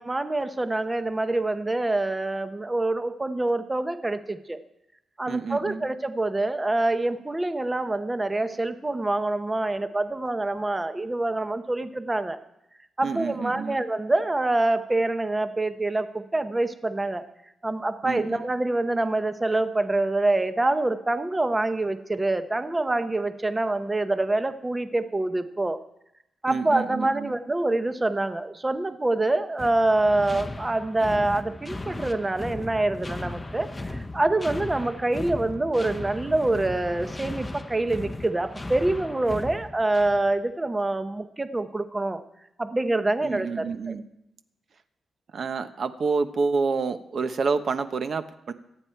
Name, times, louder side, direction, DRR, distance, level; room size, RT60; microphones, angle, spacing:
voice 1, 0.0-4.6 5.2-12.4 13.0-17.2 17.6-25.8 26.4-42.2 42.6-43.9, right 2 dB, 15° right, 10 dB, 0.8 m, -26 dB
voice 2, 5.3-5.8 13.0-13.8 18.0-18.4 26.5-27.3 43.2-44.0 45.3-48.5, right 4 dB, 55° right, 9 dB, 1.0 m, -28 dB
sound 1, 29.6-40.3, left 2 dB, 15° left, 0.7 m, -37 dB
25.0 x 8.9 x 4.6 m, 0.82 s
wide cardioid pair, 120°, 0 cm